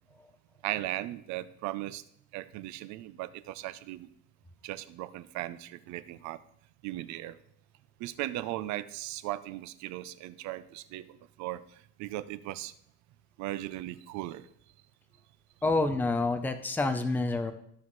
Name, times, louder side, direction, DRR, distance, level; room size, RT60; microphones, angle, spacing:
voice 1, 0.6-2.0 2.3-4.1 4.6-6.4 6.8-7.4 8.0-12.7 13.4-14.5 17.5-17.6, right 15 dB, 60° right, 15 dB, 0.6 m, -37 dB
voice 2, 15.6-17.5, left 3 dB, 5° left, 7 dB, 0.6 m, -28 dB
14.5 x 5.6 x 3.1 m, 0.69 s
cardioid pair, 150°, 33 cm